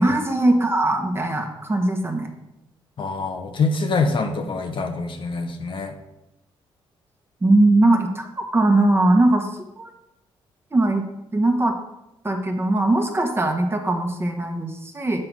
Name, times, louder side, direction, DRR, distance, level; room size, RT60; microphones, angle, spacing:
voice 1, 0.0-2.3 7.4-9.9 10.7-11.0 11.3-11.8 12.2-15.2, right 2 dB, 20° right, 4 dB, 1.3 m, -20 dB
voice 2, 3.0-6.0, left 3 dB, 55° left, 5 dB, 1.0 m, -25 dB
7.6 x 3.9 x 6.2 m, 0.88 s
cardioid pair, 75°, 10 cm